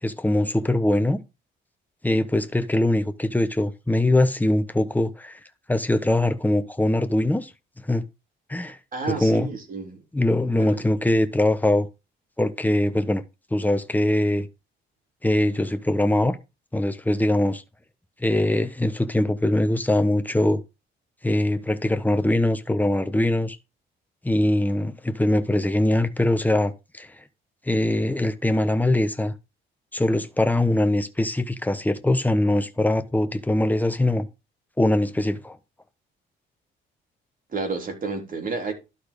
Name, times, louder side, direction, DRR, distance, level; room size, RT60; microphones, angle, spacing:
voice 1, 0.0-1.2 2.0-5.4 5.7-7.5 7.9-8.1 8.5-8.8 9.1-9.5 10.1-11.9 12.4-13.2 13.5-14.5 15.2-16.4 16.7-17.6 18.2-20.6 21.2-23.6 24.2-27.2 27.7-29.3 29.9-34.3 34.8-35.6, left 1 dB, 10° left, 1.1 m, -22 dB
voice 2, 8.9-10.0 10.6-10.9 37.5-38.7, right 4 dB, 45° right, 3.5 m, -30 dB
12.0 x 4.4 x 5.2 m
cardioid pair, 90°, 20 cm